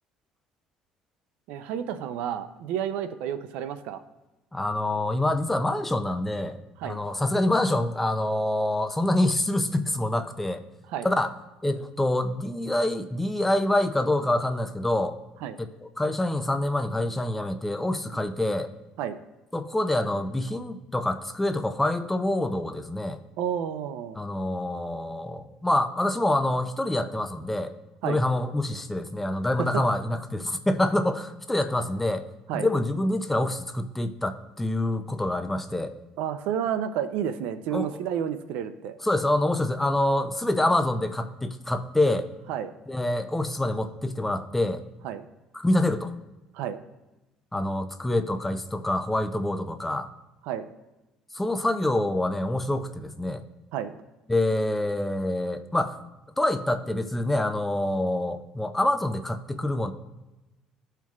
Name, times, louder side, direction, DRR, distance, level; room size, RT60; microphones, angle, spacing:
voice 1, 1.5-4.0 6.8-7.0 10.9-11.1 15.4-15.6 19.0-19.2 23.4-24.2 28.0-28.2 29.6-29.8 32.5-32.7 36.2-39.0 42.5-42.7 45.0-45.3 46.5-46.8 50.4-50.6 53.7-53.9, right 9 dB, 85° right, 11 dB, 0.5 m, -30 dB
voice 2, 4.5-10.6 11.0-11.3 11.6-15.1 15.6-18.7 19.5-23.2 24.2-27.7 28.0-32.2 32.5-35.9 37.7-37.9 39.0-42.3 42.9-44.8 45.5-46.1 47.5-50.1 51.3-53.4 54.3-56.0 56.4-59.9, left 1 dB, 10° left, 8 dB, 0.4 m, -26 dB
13.0 x 4.5 x 2.3 m, 1.0 s
cardioid pair, 135°, 2 cm